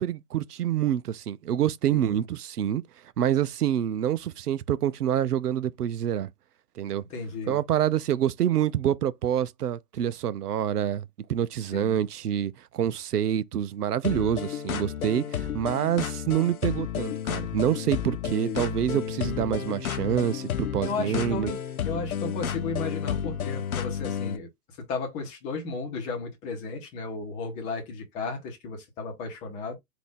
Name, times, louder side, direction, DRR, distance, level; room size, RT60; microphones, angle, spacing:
voice 1, 0.0-2.8 3.2-6.3 6.8-7.0 7.5-21.5, right 10 dB, 75° right, 0.7 m, -27 dB
voice 2, 7.1-7.6 11.7-12.0 18.4-18.7 20.8-21.6 21.8-24.5 24.9-29.8, left 4 dB, 15° left, 1.0 m, -34 dB
sound 1, 14.0-24.4, left 9 dB, 65° left, 0.8 m, -32 dB
4.0 x 2.7 x 3.7 m
hypercardioid pair, 140°, 47 cm